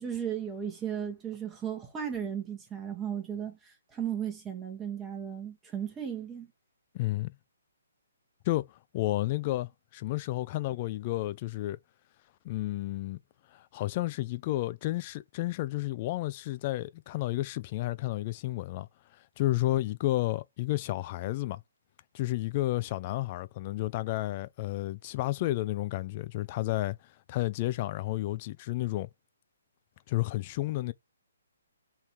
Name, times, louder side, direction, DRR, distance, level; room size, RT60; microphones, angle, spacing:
voice 1, 0.0-6.5, right 8 dB, 15° right, 1.1 m, -35 dB
voice 2, 6.9-7.3 8.5-11.8 12.4-13.2 13.5-18.9 19.4-21.6 22.1-29.1 30.1-30.9, left 17 dB, 35° left, 0.4 m, -31 dB
3.6 x 2.8 x 4.5 m
figure-of-eight pair, 140°, 0 cm